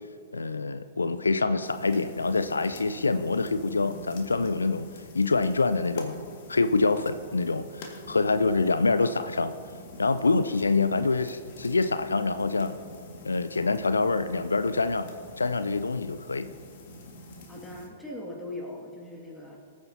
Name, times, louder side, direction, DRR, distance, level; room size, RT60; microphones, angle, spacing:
voice 1, 0.3-4.9 5.1-6.2 6.5-9.5 10.0-12.8 13.2-15.1 15.4-16.5, left 3 dB, 80° left, 12 dB, 0.4 m, -26 dB
sound 1, 1.6-17.9, left 1 dB, 50° left, 1.9 m, -45 dB
voice 2, 17.5-19.6, left 1 dB, 5° left, -2 dB, 2.2 m, -40 dB
19.5 x 9.3 x 2.8 m, 2.3 s
figure-of-eight pair, 105°, 0 cm